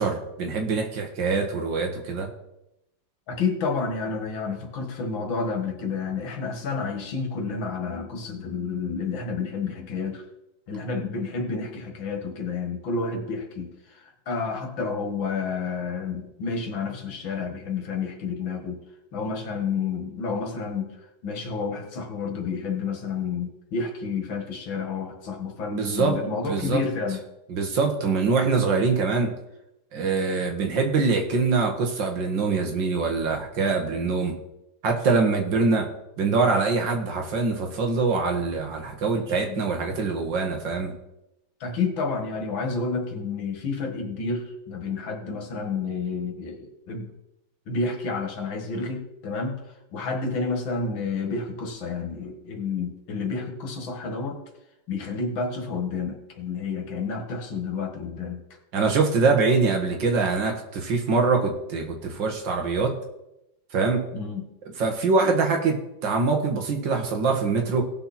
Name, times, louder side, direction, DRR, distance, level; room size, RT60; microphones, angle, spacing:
voice 1, 0.0-2.3 25.7-26.2 26.5-26.8 27.5-29.3 29.9-34.4 34.8-35.9 36.2-40.9 58.7-63.0 63.7-64.1 64.8-67.8, right 4 dB, 70° right, 3 dB, 2.2 m, -24 dB
voice 2, 3.3-10.2 10.7-18.8 19.1-27.2 39.5-39.6 41.6-47.1 47.7-49.6 49.9-54.4 54.9-58.4 64.1-64.4, left 4 dB, 85° left, 4 dB, 2.4 m, -30 dB
17.5 x 6.1 x 4.3 m, 0.87 s
omnidirectional pair, 2.1 m